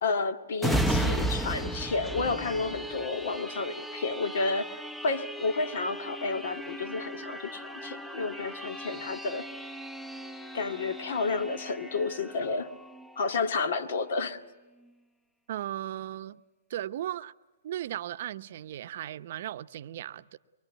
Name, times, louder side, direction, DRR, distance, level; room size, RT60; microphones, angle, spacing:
voice 1, 0.0-9.5 10.5-12.7 13.2-14.4, left 4 dB, 65° left, 1.9 m, -31 dB
sound 1, 0.6-13.9 14.4-14.5, right 1 dB, 5° left, 0.8 m, -35 dB
voice 2, 15.5-16.4 16.7-17.3 17.6-20.4, right 12 dB, 55° right, 0.8 m, -36 dB
24.5 x 23.0 x 8.2 m
hypercardioid pair, 150°, 0 cm